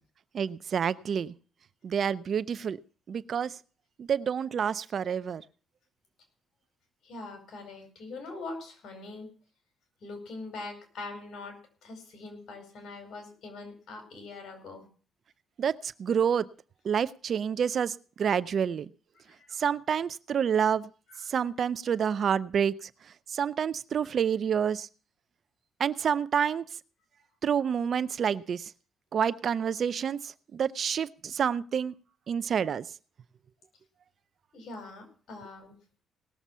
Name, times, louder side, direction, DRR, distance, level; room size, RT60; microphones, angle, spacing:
voice 1, 0.3-1.3 1.8-2.8 3.1-3.5 4.0-5.4 15.6-16.5 16.8-18.9 19.6-20.9 21.3-22.9 23.3-24.9 25.8-26.6 27.4-28.7 29.1-31.9 32.3-32.9, right 7 dB, 55° right, 17 dB, 0.5 m, -28 dB
voice 2, 7.0-9.3 10.0-14.9 18.2-18.4 19.2-19.6 34.5-35.7, left 3 dB, 70° left, 5 dB, 5.2 m, -43 dB
18.5 x 7.2 x 5.5 m, 0.39 s
cardioid pair, 90°, 0 cm